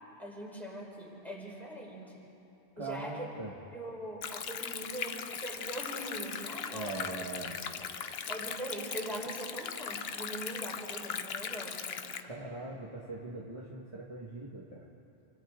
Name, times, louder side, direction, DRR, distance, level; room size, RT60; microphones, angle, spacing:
voice 1, 0.2-2.3 2.8-3.3 3.7-7.1 7.8-7.9 8.3-12.0, right 1 dB, ahead, -4 dB, 4.4 m, -42 dB
voice 2, 2.8-3.5 6.7-7.6 12.2-14.9, right 2 dB, 25° right, -4 dB, 1.7 m, -41 dB
Stream, 4.2-12.2, left 7 dB, 65° left, 1.0 m, -39 dB
29.0 x 25.5 x 3.8 m, 2.9 s
omnidirectional pair, 1.2 m